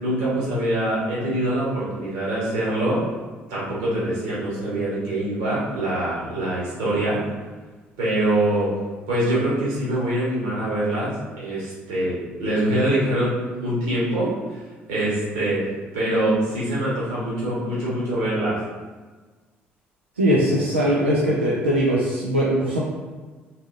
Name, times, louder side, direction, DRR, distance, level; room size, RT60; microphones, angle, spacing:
voice 1, 0.0-3.0 3.5-7.2 8.0-8.7 9.1-14.3 14.9-15.6 15.9-18.6, right 1 dB, 65° right, -7 dB, 1.4 m, -24 dB
voice 2, 20.2-22.8, equal, 85° right, -6 dB, 0.5 m, -20 dB
4.0 x 3.5 x 2.6 m, 1.4 s
figure-of-eight pair, 50°, 6 cm